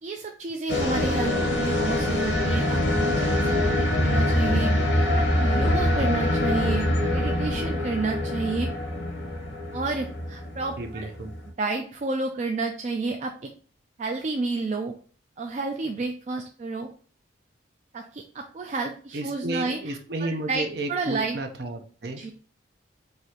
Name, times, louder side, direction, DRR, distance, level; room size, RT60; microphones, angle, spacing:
voice 1, 0.0-3.5 3.7-4.7 5.0-5.1 5.4-6.8 7.1-8.7 9.7-11.1 11.6-13.5 14.0-14.9 15.4-16.9 17.9-20.0 20.5-21.4 22.2-22.3, right 3 dB, 35° right, 3 dB, 0.3 m, -30 dB
sound 1, 0.7-11.5, left 1 dB, 70° left, 1.3 m, -24 dB
voice 2, 10.8-11.3 19.1-22.2, right 2 dB, 55° right, 4 dB, 0.7 m, -32 dB
4.9 x 2.6 x 2.9 m, 0.42 s
head